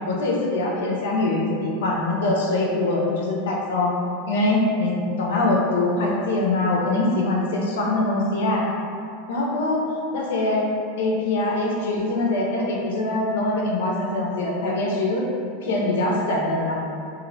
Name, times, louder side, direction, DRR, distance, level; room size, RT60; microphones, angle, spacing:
voice 1, 0.1-3.9 4.3-8.6 9.3-9.8 10.1-10.7 11.0-15.2 15.6-16.7, left 2 dB, 70° left, -3 dB, 0.4 m, -23 dB
2.5 x 2.0 x 2.5 m, 2.6 s
hypercardioid pair, 95°, 0 cm